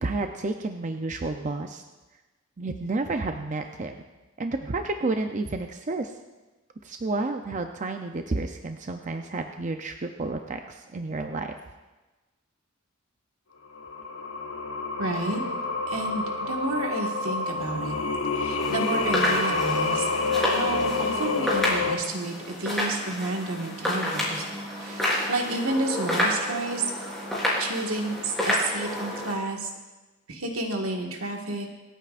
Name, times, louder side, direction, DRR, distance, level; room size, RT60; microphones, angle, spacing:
voice 1, 0.0-1.8 2.6-4.0 4.4-6.1 6.8-11.5, right 3 dB, 35° right, 5 dB, 0.6 m, -30 dB
Singing, 13.8-22.0, left 3 dB, 80° left, 0.9 m, -28 dB
voice 2, 15.0-15.4 15.9-18.0 18.3-24.4 24.7-26.9 27.6-29.7 30.3-31.7, right 2 dB, 80° right, 1 dB, 1.7 m, -31 dB
sound 1, 18.6-29.3, left 1 dB, ahead, 4.2 m, -29 dB
26.0 x 9.1 x 2.5 m, 1.2 s
head